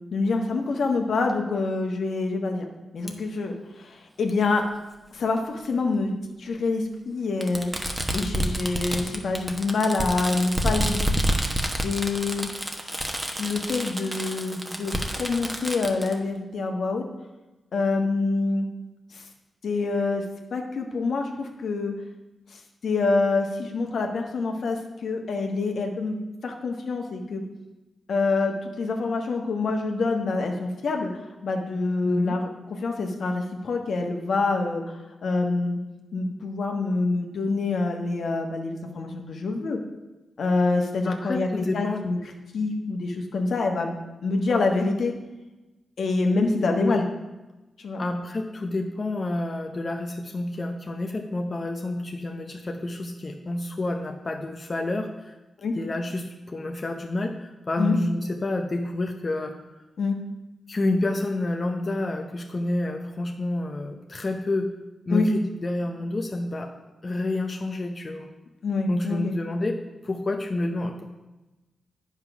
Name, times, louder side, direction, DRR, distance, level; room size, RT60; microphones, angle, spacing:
voice 1, 0.1-2.6 2.9-4.6 5.1-6.1 6.4-7.7 8.1-11.1 11.8-12.5 13.4-17.0 17.7-18.7 19.1-19.2 19.6-20.2 20.5-21.9 22.5-26.2 26.4-27.4 28.1-31.1 31.4-35.8 36.1-39.8 40.4-42.2 42.5-44.0 44.2-45.1 46.0-47.1 47.8-48.0 55.6-55.7 57.8-58.0 60.0-60.1 65.1-65.3 68.6-69.3, left 3 dB, 75° left, 3 dB, 1.3 m, -26 dB
Fireworks, 3.1-3.2 4.3-4.4 5.7-5.8 7.4-16.1, right 1 dB, 15° right, 1.1 m, -28 dB
voice 2, 32.0-32.4 41.0-42.0 46.8-47.1 48.0-55.4 55.7-59.6 60.7-64.7 65.1-66.7 67.0-68.3 68.9-69.8 70.0-71.1, left 2 dB, 40° left, 3 dB, 0.8 m, -29 dB
9.0 x 5.7 x 5.9 m, 1.1 s
cardioid pair, 80°, 0 cm